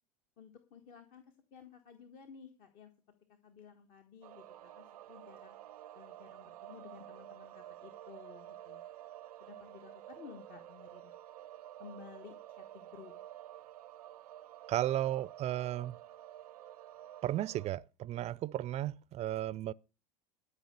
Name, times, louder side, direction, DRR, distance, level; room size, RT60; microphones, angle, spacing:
voice 1, 0.4-1.2 1.5-2.9 3.4-5.5 5.9-8.8 9.4-11.1 11.8-13.1, left 7 dB, 45° left, 1.5 m, -54 dB
sound 1, 4.2-17.7, right 13 dB, 75° right, 0.6 m, -51 dB
voice 2, 14.7-16.0 17.2-19.7, right 13 dB, 35° right, 0.5 m, -34 dB
13.0 x 5.6 x 6.8 m
hypercardioid pair, 85°, 20 cm